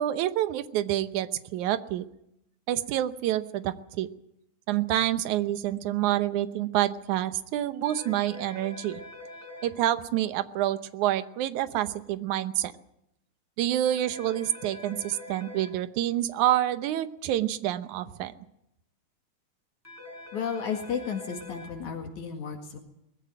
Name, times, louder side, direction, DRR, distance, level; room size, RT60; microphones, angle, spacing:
voice 1, 0.0-2.1 2.7-4.1 4.7-9.0 9.6-12.7 13.6-18.3, right 13 dB, 80° right, 12 dB, 2.4 m, -27 dB
sound 1, 7.8-9.7 13.8-15.7 19.8-21.7, left 2 dB, 5° left, 7.8 m, -44 dB
voice 2, 20.3-22.8, left 7 dB, 75° left, 4 dB, 3.4 m, -33 dB
20.5 x 15.5 x 9.2 m, 0.80 s
omnidirectional pair, 3.4 m